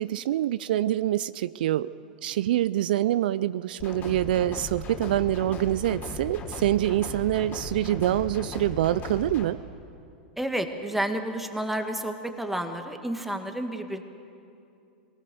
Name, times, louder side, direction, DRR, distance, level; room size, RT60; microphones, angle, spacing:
voice 1, 0.0-1.9 2.2-9.6, right 13 dB, 70° right, 16 dB, 0.4 m, -25 dB
sound 1, 3.8-9.5, left 2 dB, 35° left, 3.3 m, -37 dB
voice 2, 10.4-14.0, right 1 dB, 5° right, 5 dB, 1.8 m, -30 dB
22.5 x 18.5 x 6.9 m, 2.6 s
hypercardioid pair, 105°, 5 cm